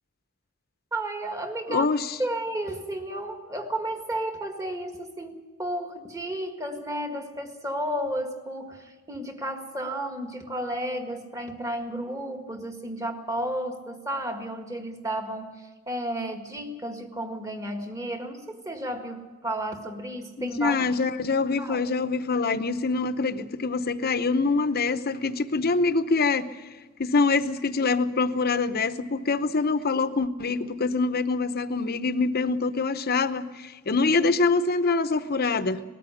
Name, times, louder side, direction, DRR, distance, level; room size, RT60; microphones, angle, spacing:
voice 1, 0.9-1.9 2.2-20.9 21.6-21.8, right 1 dB, 15° right, 5 dB, 1.8 m, -32 dB
voice 2, 1.7-2.2 20.4-26.5 27.0-35.8, left 3 dB, 50° left, 11 dB, 0.8 m, -25 dB
20.0 x 13.5 x 10.0 m, 1.3 s
head